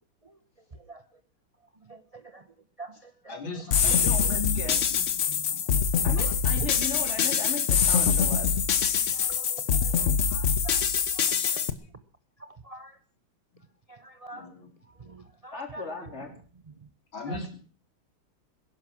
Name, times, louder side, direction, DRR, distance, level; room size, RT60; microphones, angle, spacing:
voice 1, 0.7-1.0 1.8-2.5 2.8-4.2 5.3-6.7 8.5-8.6 9.0-11.7 12.4-13.0 13.9-14.5 14.8-15.9 16.7-16.9 17.3-17.4, right 3 dB, 35° right, 9 dB, 0.5 m, -45 dB
voice 2, 3.3-5.0 9.1-9.2 11.3-11.6 13.5-13.6 14.3-14.7 17.1-17.5, left 4 dB, 70° left, 3 dB, 4.0 m, -38 dB
sound 1, 3.7-11.7, left 6 dB, 50° left, 1.0 m, -24 dB
voice 3, 3.8-4.7 6.0-8.6 15.5-16.3, left 3 dB, 30° left, 3 dB, 4.0 m, -37 dB
20.5 x 11.0 x 6.2 m, 0.42 s
omnidirectional pair, 2.3 m